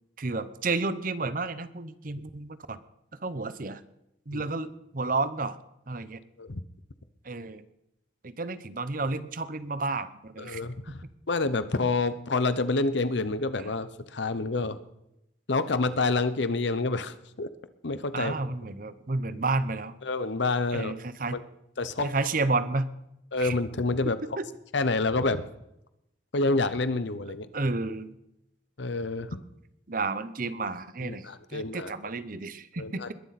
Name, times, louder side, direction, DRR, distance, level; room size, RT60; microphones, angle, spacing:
voice 1, 0.2-2.8 3.2-3.8 4.3-5.6 5.9-6.2 7.2-7.6 8.2-10.6 18.1-19.9 20.7-21.4 22.0-22.9 23.4-23.6 24.1-24.4 27.5-28.1 29.9-33.1, right 3 dB, 45° right, 14 dB, 0.8 m, -31 dB
voice 2, 10.4-14.8 15.5-17.5 17.8-18.3 20.0-20.9 21.3-21.4 21.8-22.1 23.3-24.2 24.7-25.4 26.3-27.5 28.8-29.4 31.0-31.9 32.8-33.1, left 3 dB, 70° left, 13 dB, 0.8 m, -28 dB
21.5 x 12.0 x 4.2 m, 0.85 s
head